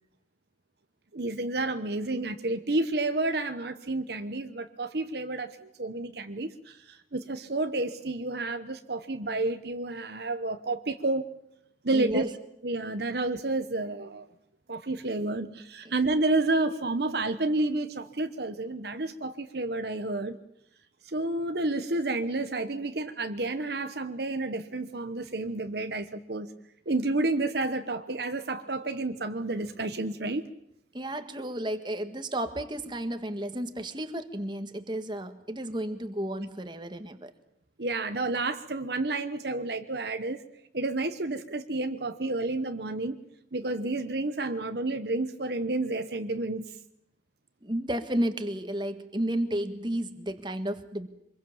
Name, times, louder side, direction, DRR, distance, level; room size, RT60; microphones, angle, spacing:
voice 1, 1.1-11.3 11.8-12.3 12.6-14.3 14.7-20.4 21.0-26.5 26.9-30.4 37.8-40.4 40.7-43.2 43.5-46.7, right 2 dB, 60° right, 8 dB, 1.1 m, -30 dB
voice 2, 11.9-12.3 30.9-37.3 47.6-51.1, right 1 dB, 25° right, 8 dB, 1.7 m, -32 dB
25.5 x 22.0 x 7.3 m, 0.78 s
head